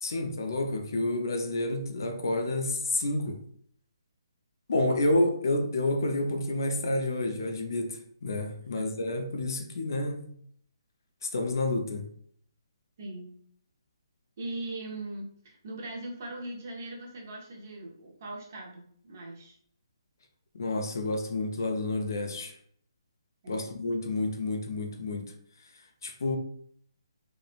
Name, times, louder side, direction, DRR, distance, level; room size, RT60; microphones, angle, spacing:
voice 1, 0.0-3.4 4.7-10.3 11.2-12.1 20.5-22.6 23.5-25.3 26.0-26.4, left 2 dB, 45° left, 5 dB, 0.3 m, -29 dB
voice 2, 13.0-13.4 14.4-19.6 23.4-23.7, right 2 dB, 30° right, -1 dB, 0.5 m, -40 dB
3.0 x 2.0 x 2.3 m, 0.63 s
hypercardioid pair, 180°, 3 cm